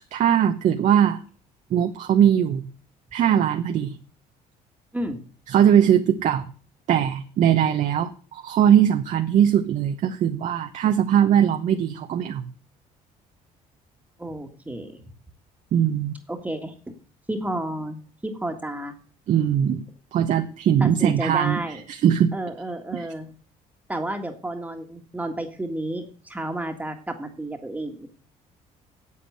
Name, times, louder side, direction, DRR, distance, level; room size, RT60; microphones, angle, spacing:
voice 1, 0.1-1.2 1.7-2.7 3.1-4.0 5.5-6.5 6.9-12.4 15.7-16.2 19.3-19.8 20.1-22.3 22.9-23.0, right 9 dB, 55° right, 6 dB, 0.9 m, -20 dB
voice 2, 4.9-5.2 14.2-15.0 16.3-16.7 17.3-19.0 20.8-21.8 22.3-23.3 23.9-28.2, right 1 dB, 10° right, 4 dB, 1.7 m, -31 dB
8.4 x 8.2 x 7.9 m, 0.41 s
cardioid pair, 110°, 15 cm